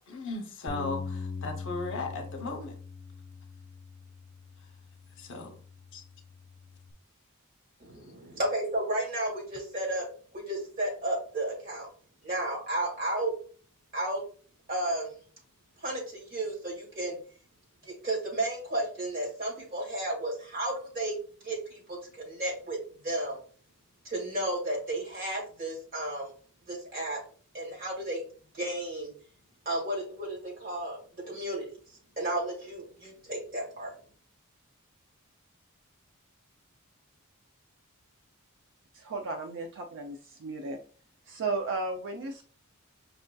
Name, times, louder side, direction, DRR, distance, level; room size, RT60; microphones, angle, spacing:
voice 1, 0.1-2.7 5.2-5.5 5.9-6.0, left 3 dB, 60° left, 5 dB, 0.7 m, -36 dB
Bass guitar, 0.7-6.9, left 4 dB, 30° left, 0.4 m, -42 dB
voice 2, 7.8-10.1 10.3-11.9 12.2-13.3 13.9-14.2 14.7-15.2 15.8-17.2 17.9-21.1 21.4-22.8 23.0-23.4 24.0-26.3 26.7-27.2 27.5-28.3 28.5-29.1 29.7-31.0 31.3-31.6 32.2-33.9, right 1 dB, 45° right, -2 dB, 1.9 m, -33 dB
voice 3, 38.9-40.8 41.3-42.4, right 3 dB, 60° right, 5 dB, 0.4 m, -34 dB
5.4 x 2.6 x 2.2 m, 0.42 s
head